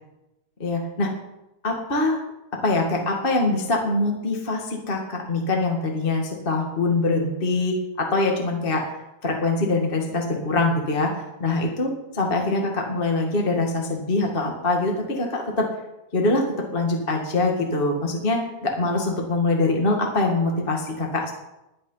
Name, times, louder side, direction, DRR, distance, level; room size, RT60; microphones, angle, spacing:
voice 1, 0.6-1.1 1.6-2.2 2.5-8.9 9.2-15.7 16.1-21.4, left 2 dB, 25° left, 1 dB, 1.4 m, -24 dB
21.0 x 9.2 x 5.7 m, 0.93 s
omnidirectional pair, 4.0 m